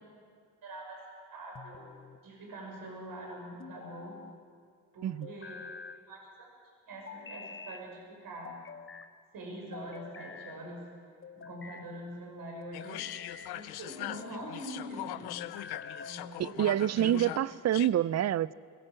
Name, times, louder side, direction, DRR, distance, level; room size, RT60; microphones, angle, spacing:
voice 1, 0.6-1.0 1.3-1.9 2.2-4.2 4.9-5.6 6.1-6.5 6.9-8.6 9.3-10.9 11.3-13.1 13.5-15.4 16.0-17.4, right 1 dB, 65° right, -1 dB, 6.8 m, -44 dB
sound 1, 1.6-2.2 3.6-4.4 5.2-6.0 7.1-7.9 8.4-9.1 9.7-10.6 11.2-11.9 12.6-13.6 14.1-14.6 15.4-16.2, left 6 dB, 35° left, 0.9 m, -47 dB
voice 2, 5.0-5.3 16.4-18.5, right 12 dB, 45° right, 20 dB, 0.5 m, -27 dB
sound 2, 12.7-17.9, left 15 dB, 85° left, 0.7 m, -41 dB
22.0 x 17.0 x 7.7 m, 2.1 s
supercardioid pair, 65°, 37 cm